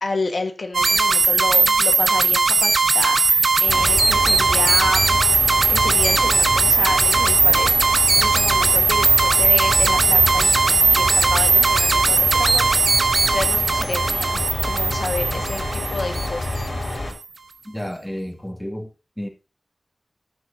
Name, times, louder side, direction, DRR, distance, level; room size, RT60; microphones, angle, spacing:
voice 1, 0.0-5.2 5.7-16.6, left 3 dB, 80° left, 1.3 m, -30 dB
sound 1, 0.7-16.6, right 3 dB, 80° right, 0.7 m, -18 dB
sound 2, 3.7-17.1, left 2 dB, 60° left, 4.0 m, -28 dB
voice 2, 17.6-19.3, equal, 10° left, 1.9 m, -32 dB
15.0 x 6.2 x 2.6 m
wide cardioid pair, 55°, 0 cm